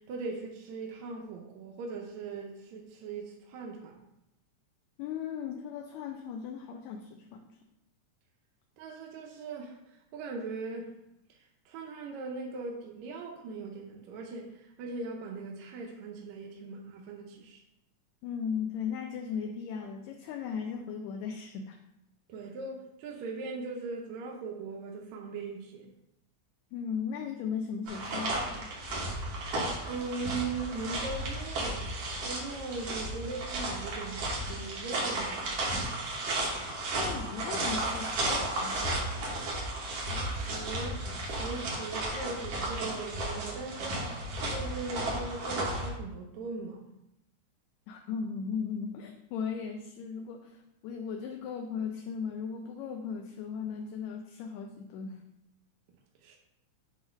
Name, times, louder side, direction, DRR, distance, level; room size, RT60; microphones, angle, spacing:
voice 1, 0.0-4.0 8.8-9.8 10.1-10.9 11.6-17.6 22.3-25.9 29.9-35.7 37.0-37.2 39.9-44.0 44.5-46.8 56.2-56.4, right 3 dB, 75° right, 1 dB, 1.9 m, -39 dB
voice 2, 5.0-7.4 18.2-21.8 26.7-28.8 37.0-39.1 47.9-55.2, left 6 dB, 80° left, 3 dB, 1.8 m, -37 dB
sound 1, 27.9-45.9, right 1 dB, 60° right, 2.2 m, -34 dB
7.8 x 2.9 x 5.0 m, 0.86 s
omnidirectional pair, 3.4 m